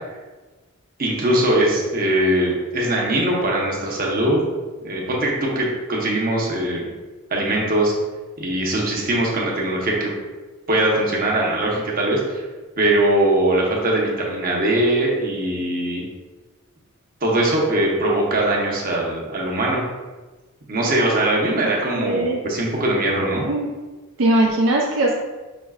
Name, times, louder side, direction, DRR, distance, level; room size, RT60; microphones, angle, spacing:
voice 1, 1.0-4.4 4.8-6.9 7.3-7.9 8.4-10.1 10.7-12.4 12.8-16.0 17.2-19.8 20.7-23.5, right 1 dB, 40° right, -2 dB, 1.0 m, -21 dB
voice 2, 22.0-22.4 23.4-23.7 24.2-25.1, right 1 dB, 65° right, -2 dB, 0.5 m, -19 dB
6.2 x 3.1 x 2.4 m, 1.3 s
head